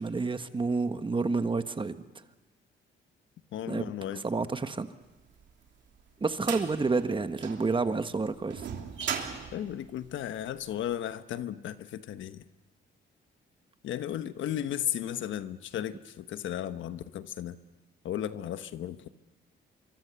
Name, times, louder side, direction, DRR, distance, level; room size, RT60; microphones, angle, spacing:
voice 1, 0.0-2.0 3.7-3.8 4.1-4.9 6.2-8.7, right 4 dB, 25° right, 10 dB, 1.4 m, -29 dB
voice 2, 3.5-4.2 9.5-12.4 13.8-17.6 18.0-19.1, left 11 dB, 75° left, 12 dB, 1.1 m, -35 dB
sound 1, 5.4-10.7, right 7 dB, 65° right, 3.1 m, -38 dB
25.5 x 24.0 x 6.9 m, 1.1 s
cardioid pair, 90°, 20 cm